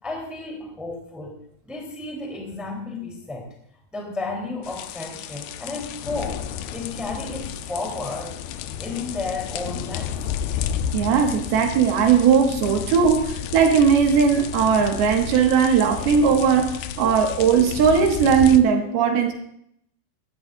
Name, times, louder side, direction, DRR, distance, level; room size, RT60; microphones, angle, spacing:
voice 1, 0.0-3.5 3.9-8.4 8.8-10.2 16.0-16.1, left 3 dB, ahead, -1 dB, 2.8 m, -33 dB
sound 1, 4.6-18.6, left 9 dB, 80° left, 2.3 m, -32 dB
voice 2, 10.9-19.3, right 6 dB, 65° right, 2 dB, 3.5 m, -18 dB
20.0 x 14.5 x 2.6 m, 0.69 s
omnidirectional pair, 5.0 m